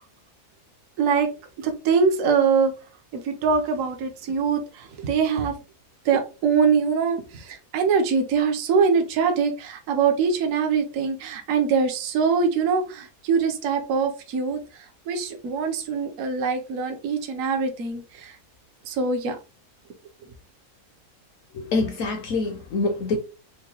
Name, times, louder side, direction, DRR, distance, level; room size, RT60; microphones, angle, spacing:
voice 1, 1.0-1.3 1.6-2.7 3.1-5.6 6.0-18.4 18.9-19.4, right 5 dB, 65° right, 1.0 m, -23 dB
voice 2, 21.5-23.2, left 3 dB, 70° left, 0.8 m, -25 dB
4.6 x 2.2 x 2.8 m
omnidirectional pair, 1.7 m